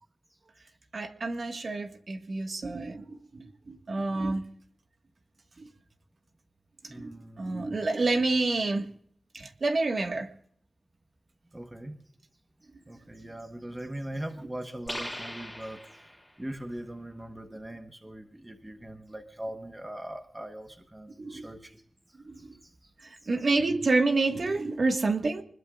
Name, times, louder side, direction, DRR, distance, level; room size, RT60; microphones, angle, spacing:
voice 1, 0.9-4.4 6.8-7.1 7.4-8.9 9.3-10.3 21.2-21.5 22.3-22.5 23.0-25.4, right 3 dB, 50° right, 4 dB, 1.7 m, -28 dB
voice 2, 6.9-7.8 11.5-12.0 12.9-21.8 22.4-23.3, right 1 dB, 15° right, 5 dB, 1.2 m, -41 dB
sound 1, 14.9-16.4, left 1 dB, 5° left, 3.3 m, -39 dB
25.0 x 20.5 x 2.5 m, 0.62 s
wide cardioid pair, 125°, 0 cm